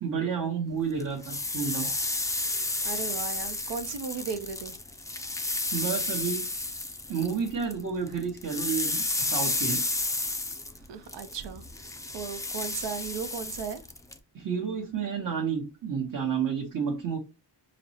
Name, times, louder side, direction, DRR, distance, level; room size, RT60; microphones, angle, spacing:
voice 1, 0.0-1.9 5.7-6.4 7.1-9.8 14.3-17.2, right 6 dB, 50° right, 1.0 m, -30 dB
sound 1, 1.0-7.8 8.1-14.2, left 2 dB, 10° left, 0.3 m, -32 dB
voice 2, 2.8-4.8 10.9-11.6 12.1-13.8, right 6 dB, 80° right, 0.7 m, -36 dB
5.0 x 2.0 x 2.8 m
cardioid pair, 100°, 41 cm